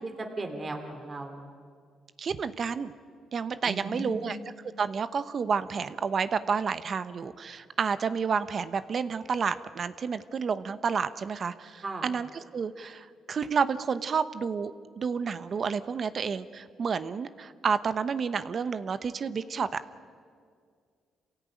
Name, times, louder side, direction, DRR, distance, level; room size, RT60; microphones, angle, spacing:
voice 1, 0.0-1.5 3.6-4.3 11.8-12.1, right 2 dB, 30° right, 4 dB, 2.9 m, -37 dB
voice 2, 2.2-2.9 3.3-4.4 4.8-19.7, right 6 dB, 50° right, 13 dB, 0.9 m, -30 dB
27.5 x 16.5 x 9.1 m, 2.1 s
cardioid pair, 90°, 0 cm